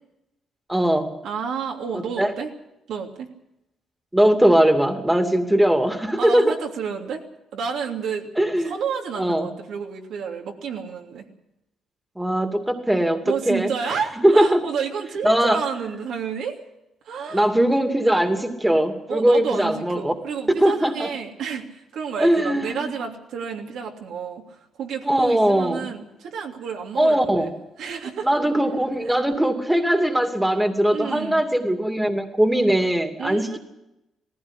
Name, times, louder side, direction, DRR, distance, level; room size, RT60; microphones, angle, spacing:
voice 1, 0.7-1.1 1.9-2.3 4.1-6.5 8.4-8.7 9.2-9.5 12.2-14.6 15.2-15.6 17.3-20.1 20.6-21.1 22.2-22.9 25.0-25.9 27.0-27.5 28.2-33.6, right 1 dB, 5° right, 6 dB, 2.5 m, -20 dB
voice 2, 1.2-2.5 2.9-3.3 6.2-7.2 7.5-8.3 8.6-11.3 13.2-16.6 17.0-17.5 19.1-24.4 24.8-28.3 29.1-29.2 30.9-31.4 33.2-33.6, right 6 dB, 75° right, 1 dB, 3.1 m, -30 dB
18.5 x 15.5 x 9.9 m, 0.91 s
cardioid pair, 90°, 0 cm